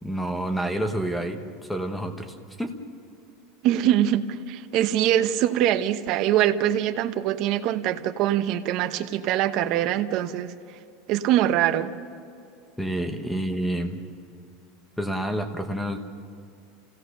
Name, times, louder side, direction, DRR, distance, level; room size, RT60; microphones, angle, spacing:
voice 1, 0.0-1.4 1.7-2.8 12.8-14.0 15.0-16.0, right 1 dB, 5° left, 7 dB, 1.2 m, -28 dB
voice 2, 3.6-10.5 11.1-11.9, right 11 dB, 40° right, 9 dB, 0.9 m, -23 dB
27.5 x 16.5 x 6.6 m, 2.5 s
supercardioid pair, 175°, 0 cm